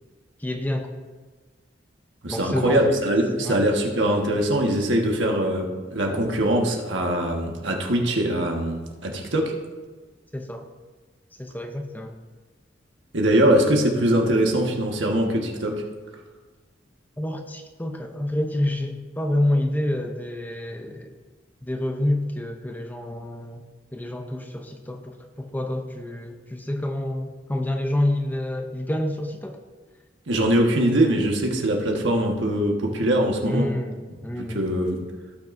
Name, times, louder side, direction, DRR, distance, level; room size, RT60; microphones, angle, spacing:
voice 1, 0.4-0.9 2.3-2.8 3.4-3.7 6.1-6.2 10.3-10.7 11.4-12.2 17.2-21.1 21.6-23.6 23.9-29.6 33.5-34.0 34.2-34.6, left 1 dB, 10° left, 4 dB, 0.6 m, -28 dB
voice 2, 2.2-9.5 13.1-15.8 30.3-33.7 34.3-35.0, right 1 dB, 70° right, 1 dB, 1.4 m, -22 dB
16.5 x 6.1 x 2.6 m, 1.4 s
head